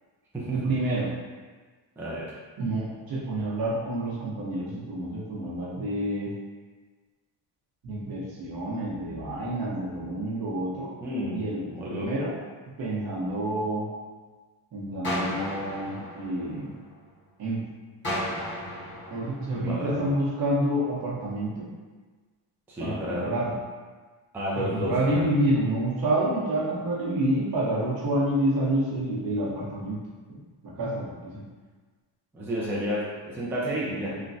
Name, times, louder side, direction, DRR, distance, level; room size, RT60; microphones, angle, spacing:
voice 1, 0.5-1.1 2.6-6.3 7.8-10.9 11.3-12.3 12.8-13.9 14.7-16.7 17.4-17.6 19.1-21.6 22.8-23.5 24.6-30.0 30.6-31.4 33.9-34.2, right 1 dB, 50° right, -5 dB, 0.9 m, -28 dB
voice 2, 2.0-2.3 11.0-11.4 11.7-12.1 19.5-20.2 22.7-23.3 24.3-25.2 32.3-34.1, equal, 5° right, -7 dB, 0.4 m, -31 dB
sound 1, 15.0-17.1 18.0-20.1, equal, 25° left, 1.4 m, -34 dB
3.2 x 2.2 x 2.6 m, 1.4 s
cardioid pair, 120°, 45 cm